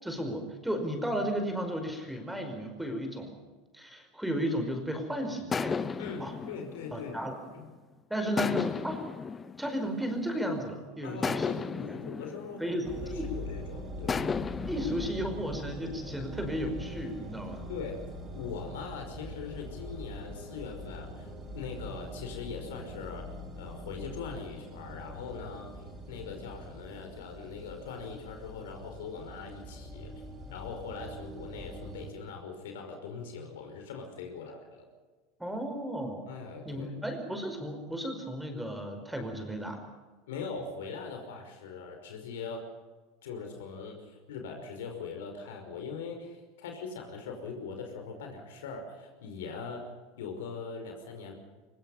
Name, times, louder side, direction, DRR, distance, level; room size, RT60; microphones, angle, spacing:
voice 1, 0.0-3.4 3.7-6.3 6.9-7.4 8.1-9.0 9.6-11.9 12.6-13.3 14.7-17.6 35.4-36.3 36.6-39.8, equal, 5° right, 5 dB, 5.1 m, -34 dB
sound 1, 5.5-7.8 8.4-10.5 11.2-13.5 14.1-15.1, left 5 dB, 20° left, 0.9 m, -34 dB
voice 2, 6.0-7.3 7.5-7.6 8.2-8.3 11.0-12.6 12.9-14.2 17.7-18.1 18.3-23.3 23.6-30.1 30.5-34.9 36.3-36.9 40.3-42.7 43.2-49.9 50.2-51.3, left 5 dB, 65° left, 4 dB, 5.4 m, -41 dB
sound 2, 12.8-32.1, equal, 25° right, 7.5 m, -43 dB
24.0 x 22.5 x 5.7 m, 1.3 s
figure-of-eight pair, 80°, 0 cm